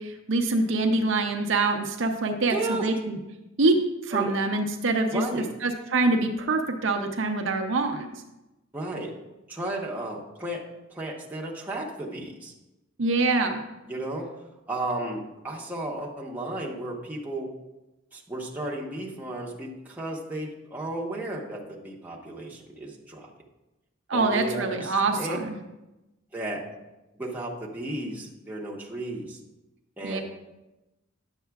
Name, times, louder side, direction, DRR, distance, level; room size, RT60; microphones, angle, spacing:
voice 1, 0.0-3.2 3.6-8.1 13.0-13.6 24.1-25.5 30.0-30.2, right 3 dB, 65° right, 4 dB, 0.7 m, -25 dB
voice 2, 2.5-2.9 4.1-4.3 5.1-5.5 8.7-9.2 9.5-10.6 10.9-12.5 13.9-14.3 14.7-17.5 18.1-23.3 24.1-25.4 26.3-26.7 27.1-29.4 30.0-30.2, right 2 dB, 10° right, -4 dB, 1.0 m, -34 dB
10.5 x 7.3 x 2.3 m, 1.0 s
head